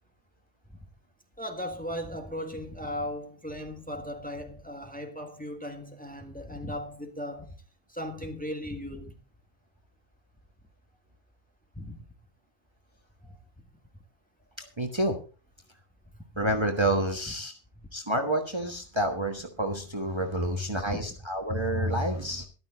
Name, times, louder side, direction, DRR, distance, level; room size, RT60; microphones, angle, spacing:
voice 1, 1.4-7.6 7.9-9.2 11.8-12.0 16.5-16.6 17.3-17.4 20.7-21.1, equal, 5° left, 1.7 m, -37 dB
voice 2, 14.8-15.1 16.4-17.5 17.9-22.5, right 1 dB, 25° right, 1.4 m, -28 dB
13.0 x 12.5 x 4.0 m
omnidirectional pair, 1.1 m